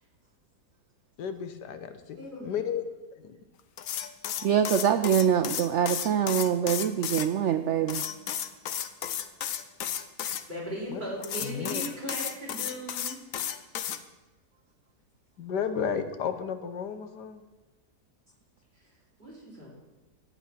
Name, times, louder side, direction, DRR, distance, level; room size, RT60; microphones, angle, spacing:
voice 1, 1.2-2.2 2.4-2.8 3.2-3.4 10.9-11.0 11.4-11.8 15.4-17.4, left 7 dB, 80° left, 9 dB, 1.5 m, -33 dB
voice 2, 2.1-2.6 10.5-13.4 19.2-19.7, equal, 25° right, -5 dB, 4.2 m, -38 dB
sound 1, 3.8-7.3 7.9-10.4 11.2-14.0, left 9 dB, 60° left, 1.0 m, -33 dB
voice 3, 4.4-8.0, right 9 dB, 75° right, 9 dB, 0.6 m, -24 dB
12.0 x 8.6 x 5.9 m, 1.2 s
omnidirectional pair, 1.8 m